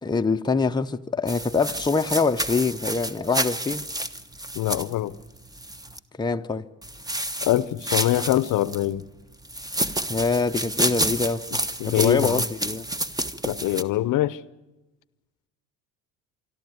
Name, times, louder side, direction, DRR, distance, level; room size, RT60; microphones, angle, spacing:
voice 1, 0.0-3.8 6.2-6.6 10.1-11.4 11.8-12.8, left 4 dB, 10° left, 0.8 m, -24 dB
sound 1, 1.3-6.0 6.8-8.9 9.4-13.8, right 1 dB, 10° right, 1.1 m, -29 dB
voice 2, 4.5-5.1 7.4-9.1 11.8-12.4 13.5-14.4, left 14 dB, 60° left, 0.8 m, -23 dB
25.0 x 13.0 x 9.5 m
supercardioid pair, 70°, 36 cm